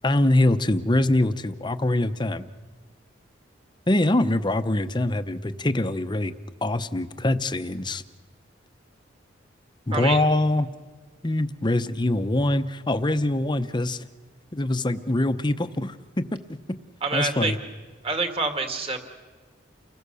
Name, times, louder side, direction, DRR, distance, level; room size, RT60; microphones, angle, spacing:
voice 1, 0.0-2.4 3.9-6.3 6.6-8.0 9.9-10.7 11.2-14.1 14.5-16.3 17.1-17.6, left 1 dB, 25° left, 11 dB, 0.8 m, -23 dB
voice 2, 9.9-10.3 17.0-17.5 18.0-19.0, right 3 dB, 30° right, 5 dB, 2.3 m, -26 dB
29.5 x 21.0 x 7.0 m, 1.4 s
head